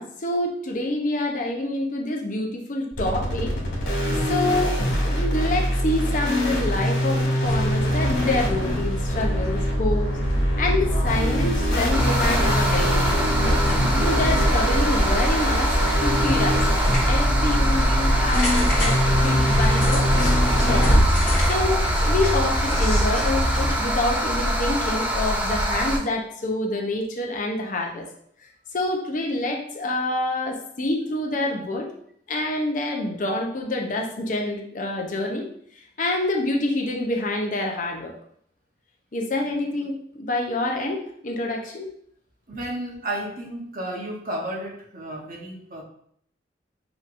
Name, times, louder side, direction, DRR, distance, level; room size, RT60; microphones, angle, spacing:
voice 1, 0.0-3.5 4.3-10.1 10.6-13.6 14.0-15.7 16.0-16.6 17.0-18.5 18.8-20.4 20.7-21.1 21.5-28.1 28.7-31.9 32.3-35.5 36.0-38.1 39.1-41.9, left 2 dB, 40° left, 1 dB, 0.6 m, -27 dB
sound 1, 2.9-21.0, equal, 65° left, 1.6 m, -24 dB
sound 2, 7.4-23.7, equal, 5° left, 1.3 m, -25 dB
sound 3, 11.9-26.0, equal, 10° right, 0.4 m, -24 dB
voice 2, 42.5-45.8, right 1 dB, 45° right, -1 dB, 0.9 m, -32 dB
5.3 x 3.0 x 2.5 m, 0.66 s
head